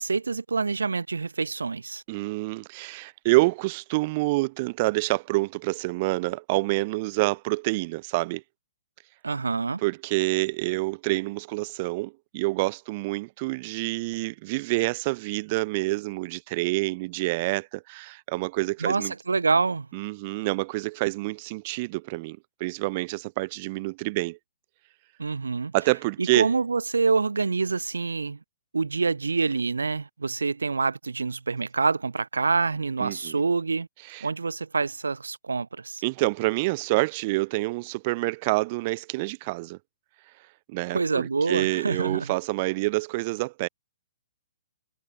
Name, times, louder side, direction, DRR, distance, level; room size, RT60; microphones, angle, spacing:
voice 1, 0.0-2.0 9.2-9.8 18.8-19.9 25.2-25.7 26.2-28.4 28.7-33.9 34.2-36.0 40.9-42.3, right 4 dB, 75° right, 3.1 m, -26 dB
voice 2, 2.1-8.4 9.8-19.1 19.9-24.4 25.7-26.5 33.0-33.4 34.1-34.3 36.0-39.8 40.7-43.7, right 23 dB, 35° right, 0.8 m, -27 dB
figure-of-eight pair, 120°, 0 cm